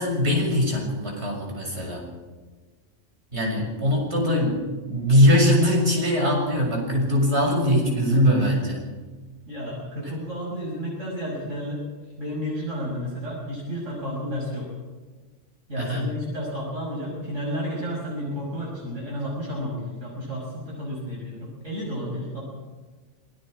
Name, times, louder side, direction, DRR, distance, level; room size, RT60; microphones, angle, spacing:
voice 1, 0.0-2.0 3.3-8.8 15.8-16.1, equal, 60° right, -1 dB, 7.4 m, -21 dB
voice 2, 9.5-11.8 12.2-14.7 15.7-22.4, equal, 85° right, -3 dB, 6.3 m, -31 dB
27.5 x 20.5 x 4.9 m, 1.3 s
omnidirectional pair, 1.3 m